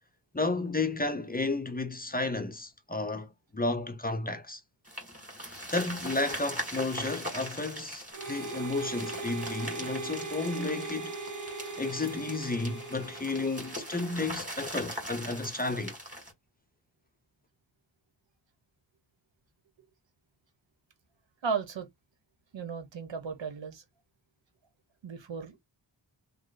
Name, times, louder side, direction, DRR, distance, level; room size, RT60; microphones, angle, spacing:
voice 1, 0.3-4.6 5.7-11.1 11.8-15.9, left 3 dB, 20° left, 0.6 m, -32 dB
sound 1, 4.9-16.3, equal, 15° right, 2.1 m, -41 dB
Harmonica, 8.1-14.5, right 3 dB, 45° right, 0.8 m, -40 dB
voice 2, 21.4-21.9 22.5-23.8 25.0-25.6, right 5 dB, 85° right, 0.9 m, -35 dB
3.1 x 2.0 x 3.8 m
wide cardioid pair, 65°, 44 cm